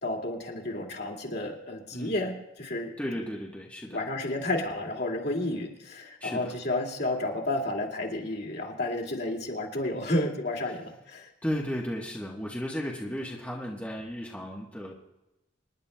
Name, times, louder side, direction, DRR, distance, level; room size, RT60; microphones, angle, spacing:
voice 1, 0.0-2.9 3.9-11.3, left 1 dB, 55° left, -1 dB, 2.2 m, -31 dB
voice 2, 3.0-4.0 6.2-6.5 11.4-14.9, equal, 5° left, -3 dB, 1.1 m, -34 dB
27.0 x 11.0 x 2.2 m, 0.95 s
head